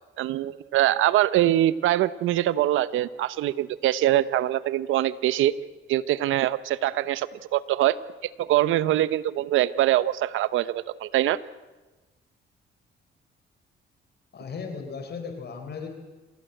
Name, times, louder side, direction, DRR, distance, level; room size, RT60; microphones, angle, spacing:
voice 1, 0.2-5.5 5.9-8.0 8.2-11.4, right 13 dB, 85° right, 17 dB, 1.0 m, -23 dB
voice 2, 14.3-15.9, left 5 dB, 55° left, 6 dB, 4.1 m, -36 dB
27.0 x 17.5 x 8.0 m, 1.2 s
cardioid pair, 90°, 20 cm